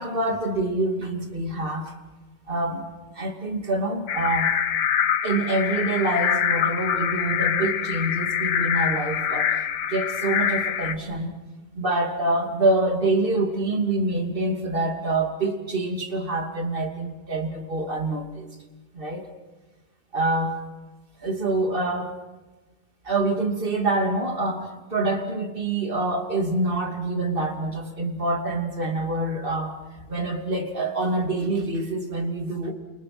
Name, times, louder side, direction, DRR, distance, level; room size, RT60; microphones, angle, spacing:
voice 1, 0.0-2.0 2.5-2.9 3.2-4.5 5.2-9.5 9.9-11.3 11.8-18.5 18.9-19.2 20.1-20.6 21.2-22.1 23.0-29.7 30.1-32.7, right 2 dB, 30° right, 3 dB, 2.9 m, -26 dB
sound 1, 4.1-11.0, left 8 dB, 70° left, 1.6 m, -25 dB
29.0 x 28.5 x 6.0 m, 1.2 s
omnidirectional pair, 1.9 m